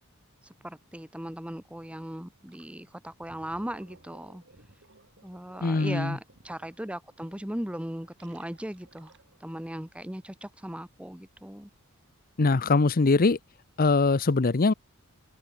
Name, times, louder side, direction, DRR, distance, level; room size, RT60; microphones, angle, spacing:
voice 1, 0.4-4.4 5.2-9.1 9.4-11.7, right 1 dB, 5° right, 1.2 m, -38 dB
Gurgling, 2.5-2.7 3.1-9.6, right 2 dB, 55° right, 7.0 m, -59 dB
voice 2, 5.6-6.2 12.4-13.4 13.8-14.7, left 3 dB, 40° left, 0.7 m, -22 dB
head